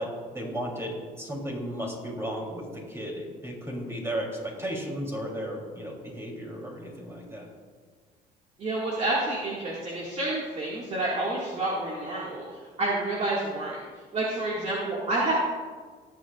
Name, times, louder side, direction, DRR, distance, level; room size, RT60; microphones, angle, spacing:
voice 1, 0.0-7.5, equal, 15° right, -1 dB, 3.1 m, -34 dB
voice 2, 8.6-12.4 12.8-13.8 14.1-15.3, right 2 dB, 40° right, -5 dB, 2.0 m, -29 dB
18.5 x 8.0 x 2.4 m, 1.5 s
cardioid pair, 110°, 17 cm